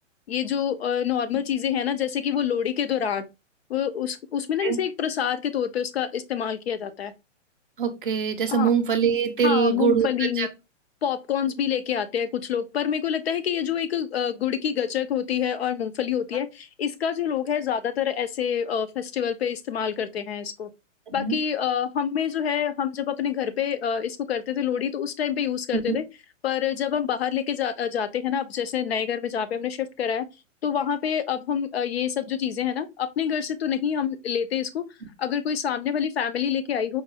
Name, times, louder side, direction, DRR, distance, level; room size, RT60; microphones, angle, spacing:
voice 1, 0.3-3.3 3.7-7.1 8.5-8.7 9.4-10.5 11.0-20.7 21.1-26.0 26.4-30.3 30.6-34.8 35.2-37.0, left 8 dB, 55° left, 0.5 m, -27 dB
voice 2, 7.8-10.5 21.1-21.4 25.7-26.0, right 7 dB, 45° right, 0.5 m, -23 dB
4.5 x 2.2 x 2.7 m
hypercardioid pair, 175°, 38 cm